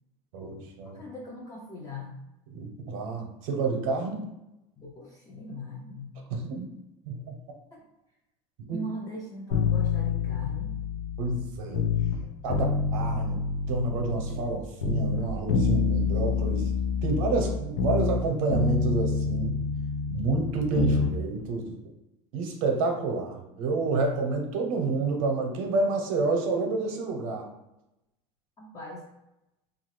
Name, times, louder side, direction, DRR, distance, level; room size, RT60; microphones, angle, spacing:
voice 1, 0.3-1.0 2.5-4.2 6.3-6.7 7.1-7.4 8.7-8.8 11.2-11.9 12.4-13.4 13.7-16.7 17.0-19.6 20.1-21.8 22.3-27.5, right 3 dB, 75° right, 3 dB, 0.8 m, -29 dB
voice 2, 0.9-2.1 4.8-6.1 7.7-7.8 8.7-10.8 12.1-12.7 28.6-29.0, left 1 dB, 20° left, -3 dB, 0.5 m, -40 dB
sound 1, 9.5-12.2 12.5-14.6 14.8-18.2 18.5-21.1 21.4-21.5, left 5 dB, 75° left, 0.6 m, -27 dB
2.7 x 2.4 x 3.1 m, 0.91 s
supercardioid pair, 100°, 17 cm